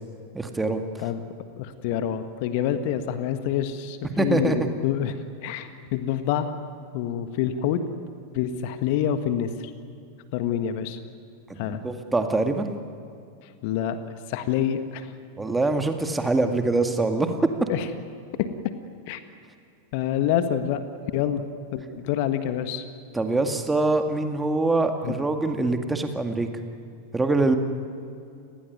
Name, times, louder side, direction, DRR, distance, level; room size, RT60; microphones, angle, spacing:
voice 1, 0.3-0.8 4.2-4.7 11.5-12.7 15.4-17.3 23.1-26.5 27.1-27.6, right 2 dB, 10° right, 6 dB, 2.1 m, -24 dB
voice 2, 1.6-6.5 6.9-7.8 8.3-9.5 10.3-11.0 11.6-11.8 13.6-14.0 14.3-15.1 17.7-17.9 18.4-18.5 19.1-19.2 19.9-20.8 21.1-21.4 21.7-22.9 25.0-25.2, left 10 dB, 45° left, 10 dB, 1.6 m, -27 dB
30.0 x 19.5 x 9.5 m, 2.5 s
figure-of-eight pair, 90°, 0 cm